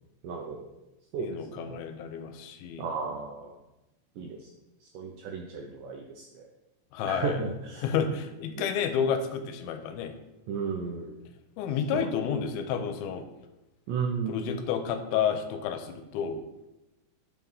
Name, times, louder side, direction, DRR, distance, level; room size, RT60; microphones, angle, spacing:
voice 1, 0.2-0.7 1.1-1.8 2.8-3.6 4.2-4.5 4.8-6.5 7.1-7.9 8.6-8.7 10.5-11.3 11.9-12.4 13.9-14.6, right 5 dB, 85° right, 1 dB, 1.8 m, -35 dB
voice 2, 1.2-2.9 6.9-7.4 7.8-10.1 11.6-13.3 14.3-16.4, left 7 dB, 90° left, 8 dB, 2.5 m, -30 dB
6.2 x 3.6 x 5.4 m, 0.96 s
omnidirectional pair, 4.4 m